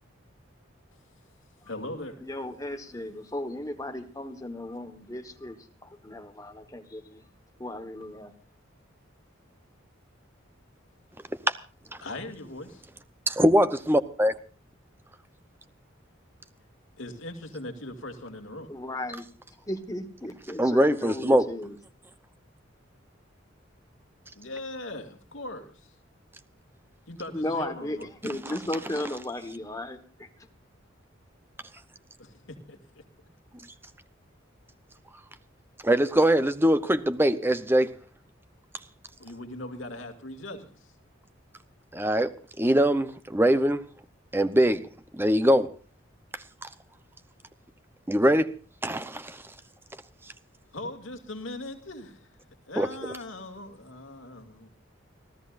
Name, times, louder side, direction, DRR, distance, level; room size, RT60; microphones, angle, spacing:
voice 1, 1.6-2.2 12.0-12.8 17.0-18.7 24.4-25.9 27.1-28.1 32.2-33.0 39.2-40.9 50.7-52.3 52.7-54.7, left 1 dB, 75° left, 2.4 m, -40 dB
voice 2, 2.2-7.2 7.6-8.3 18.7-19.3 19.7-21.8 27.3-30.3, left 1 dB, 15° left, 1.4 m, -35 dB
voice 3, 13.3-14.3 20.6-21.5 35.8-37.9 41.9-43.8 44.3-44.8 45.1-45.7 46.6-46.7 48.1-48.5 48.8-49.4 52.8-52.9, equal, 10° right, 0.8 m, -22 dB
30.0 x 13.5 x 2.6 m
head